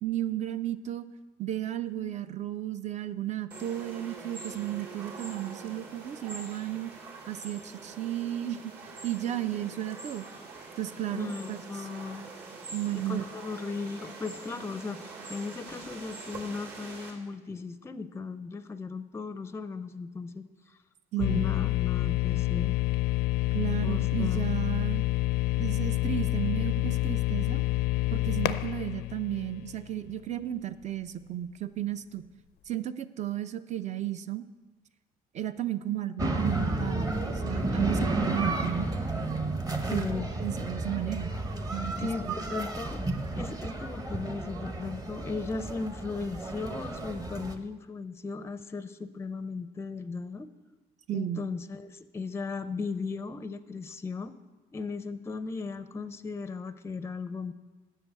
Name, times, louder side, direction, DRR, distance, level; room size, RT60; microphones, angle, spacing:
voice 1, 0.0-1.1 1.4-6.9 7.3-8.7 9.0-10.3 10.8-11.9 12.7-13.2 21.1-21.5 23.5-25.0 25.5-27.6 28.1-32.2 32.7-34.4 35.3-37.2 37.4-38.9 39.9-40.1 40.4-41.3 41.7-42.3 51.1-51.4, right 12 dB, 45° right, 13 dB, 0.5 m, -34 dB
sound 1, 3.5-17.1, right 3 dB, 65° right, 2.4 m, -44 dB
voice 2, 11.1-12.3 12.9-20.8 21.2-22.7 23.8-24.7 39.9-40.3 42.0-43.1 43.4-50.5 51.1-54.4 54.7-57.5, left 4 dB, 15° left, 12 dB, 0.5 m, -36 dB
sound 2, 21.2-30.1, left 16 dB, 80° left, 0.5 m, -28 dB
sound 3, 36.2-47.5, right 2 dB, 20° right, 0.8 m, -32 dB
7.8 x 6.4 x 8.1 m, 1.2 s
cardioid pair, 110°, 17 cm